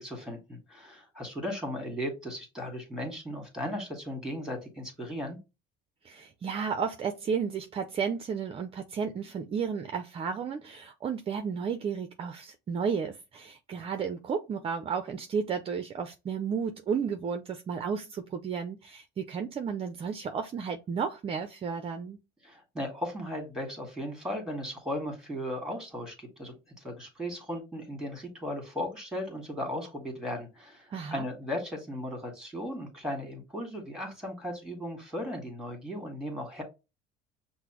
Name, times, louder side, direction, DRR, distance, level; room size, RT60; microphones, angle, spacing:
voice 1, 0.0-5.4 22.4-36.6, left 1 dB, 5° right, 1.7 m, -36 dB
voice 2, 6.0-22.2 30.9-31.3, right 6 dB, 30° right, 0.5 m, -33 dB
5.8 x 2.1 x 2.9 m
cardioid pair, 130°, 20 cm